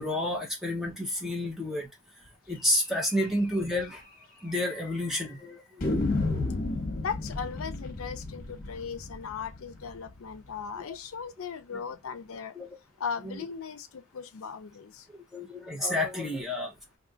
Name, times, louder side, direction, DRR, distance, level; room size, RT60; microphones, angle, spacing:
voice 1, 0.0-1.9 2.5-4.0 4.4-5.9 12.5-12.7 13.2-13.4 15.1-16.7, left 1 dB, ahead, 0.6 m, -30 dB
sound 1, 3.0-3.1 3.4-3.5 3.8-3.9 4.6-5.1 5.8-10.6, left 2 dB, 40° left, 0.9 m, -33 dB
voice 2, 6.9-12.5 13.0-15.1, left 6 dB, 75° left, 0.5 m, -38 dB
2.7 x 2.4 x 3.8 m
head